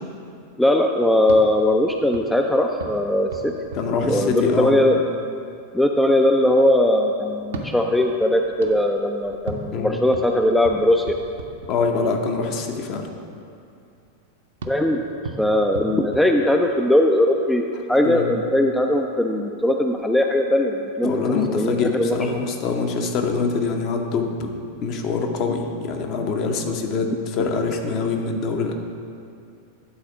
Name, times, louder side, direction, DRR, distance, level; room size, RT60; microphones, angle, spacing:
voice 1, 0.6-3.5 4.0-5.0 5.7-11.1 14.7-15.0 15.4-21.2 21.5-22.2, left 1 dB, 5° left, 3 dB, 0.3 m, -19 dB
sound 1, 1.2-5.0 7.4-12.3 14.6-17.0, right 3 dB, 60° right, 0.7 m, -38 dB
voice 2, 3.7-4.7 9.7-10.0 11.7-13.1 18.0-18.3 21.0-24.5 24.8-28.7, left 4 dB, 40° left, 4 dB, 0.7 m, -24 dB
9.6 x 4.2 x 4.9 m, 2.5 s
figure-of-eight pair, 90°, 0 cm